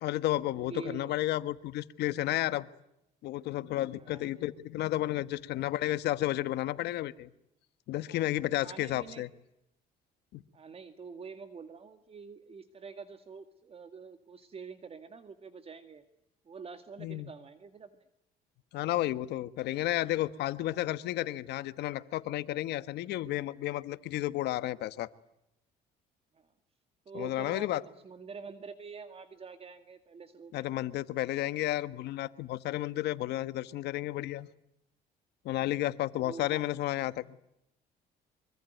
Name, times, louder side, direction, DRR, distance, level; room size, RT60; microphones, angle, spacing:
voice 1, 0.0-2.7 3.2-7.3 7.9-9.3 10.3-10.4 17.0-17.3 18.7-25.1 27.1-27.8 30.5-34.5 35.4-37.4, left 15 dB, 80° left, 1.4 m, -32 dB
voice 2, 0.6-1.2 4.0-4.6 8.1-8.3 8.6-9.3 10.5-16.0 16.5-18.1 26.3-26.5 27.1-27.7 28.0-30.7 35.7-35.9 36.2-36.7, right 5 dB, 35° right, 2.0 m, -46 dB
24.5 x 24.5 x 9.2 m
cardioid pair, 110°, 17 cm